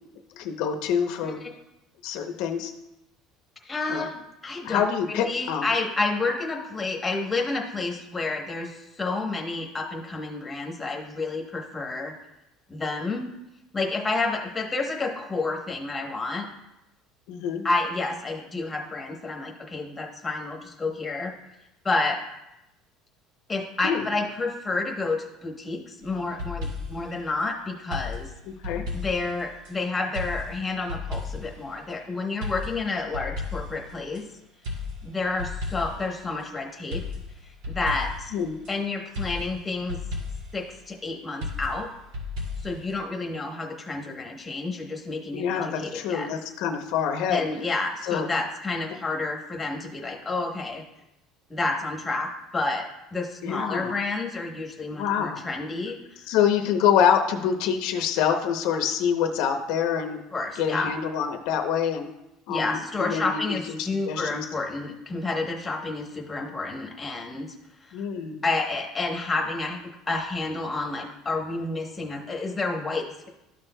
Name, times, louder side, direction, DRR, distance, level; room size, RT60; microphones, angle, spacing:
voice 1, 0.3-1.4 2.0-2.7 3.9-4.1 4.6-5.7 17.3-17.6 23.8-24.1 28.5-28.9 38.3-38.5 45.3-47.4 48.0-48.3 53.4-54.0 54.9-55.4 56.3-60.2 60.6-62.1 62.5-64.5 67.9-68.4, left 8 dB, 60° left, 6 dB, 0.6 m, -26 dB
voice 2, 3.6-4.8 5.1-12.1 12.7-13.3 13.7-16.5 17.6-21.3 21.8-22.2 23.5-28.3 28.9-34.2 35.0-37.0 37.7-38.3 38.7-40.0 40.5-41.9 42.6-46.3 47.3-50.8 51.5-56.0 60.3-60.9 62.5-67.5 67.8-68.0 68.4-69.8 70.1-73.3, left 3 dB, 10° left, 1 dB, 1.0 m, -30 dB
sound 1, 26.0-27.1 27.9-29.7 30.1-31.6 32.4-34.2 34.6-36.1 36.9-38.7 39.1-40.6 41.4-43.0, left 3 dB, 80° right, 2.3 m, -34 dB
12.5 x 6.1 x 2.2 m, 0.92 s
cardioid pair, 175°, 0 cm